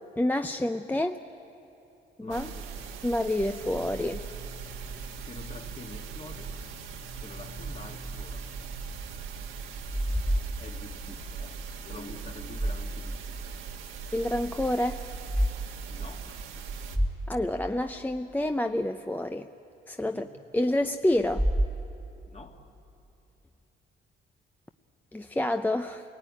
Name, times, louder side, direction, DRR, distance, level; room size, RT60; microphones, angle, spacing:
voice 1, 0.2-1.2 2.2-2.5 3.0-4.2 14.1-15.0 17.3-19.5 19.9-20.3 20.5-21.5 25.1-26.0, left 1 dB, 10° left, 7 dB, 0.6 m, -28 dB
voice 2, 2.2-3.0 5.2-6.5 7.2-8.5 10.6-11.6 11.8-13.6 15.9-16.3 20.1-20.3 22.3-22.7, left 3 dB, 35° left, 3 dB, 2.2 m, -46 dB
sound 1, 2.3-17.0, right 6 dB, 90° right, 1.6 m, -40 dB
sound 2, 3.6-11.3, left 4 dB, 85° left, 4.9 m, -51 dB
sound 3, 7.6-9.3 9.6-11.3 12.2-13.3 13.7-13.8 15.1-15.5 16.0-16.1 16.5-16.6 16.9-18.2 21.2-22.3, equal, 10° right, 1.0 m, -31 dB
26.5 x 18.5 x 9.9 m, 2.7 s
cardioid pair, 90°, 20 cm